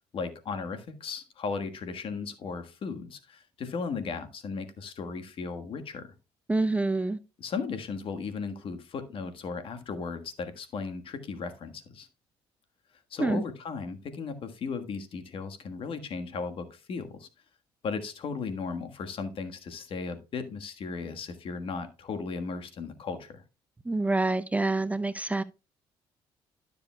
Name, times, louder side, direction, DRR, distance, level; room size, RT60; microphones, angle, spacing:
voice 1, 0.1-6.1 7.4-12.1 13.1-17.3 17.8-23.4, left 5 dB, 60° left, 1.4 m, -36 dB
voice 2, 6.5-7.2 13.2-13.4 23.9-25.4, right 2 dB, 15° right, 0.6 m, -26 dB
12.5 x 6.8 x 2.3 m
supercardioid pair, 70°, 11 cm